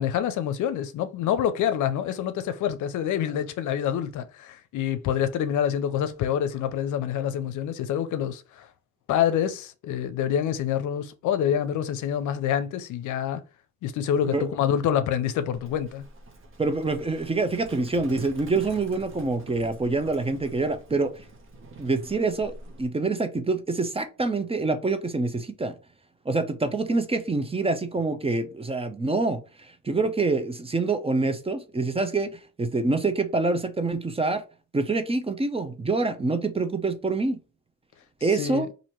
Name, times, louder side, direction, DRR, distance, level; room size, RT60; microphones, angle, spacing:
voice 1, 0.0-8.7 9.1-13.4 13.8-16.0 38.3-38.7, left 9 dB, 80° left, 0.6 m, -26 dB
Livestock farm animals working animals, 15.5-22.9, right 2 dB, 45° right, 1.1 m, -46 dB
voice 2, 16.6-21.1 21.8-22.5 22.8-25.7 26.3-29.4 29.8-32.3 32.6-34.4 34.7-37.4 38.2-38.7, right 3 dB, 20° right, 0.7 m, -26 dB
2.9 x 2.7 x 4.3 m
cardioid pair, 90°, 30 cm